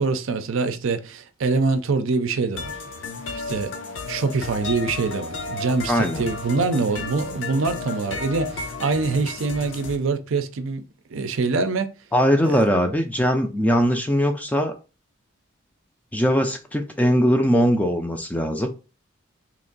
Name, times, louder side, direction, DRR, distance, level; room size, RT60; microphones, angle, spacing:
voice 1, 0.0-2.8 3.3-3.7 4.1-10.8 11.1-11.9 12.4-12.7, right 4 dB, 70° right, 0.5 m, -24 dB
sound 1, 2.6-10.0, left 3 dB, 60° left, 0.5 m, -33 dB
voice 2, 5.9-6.2 12.1-14.7 16.1-18.7, equal, 5° left, 0.3 m, -20 dB
3.0 x 2.5 x 3.8 m
head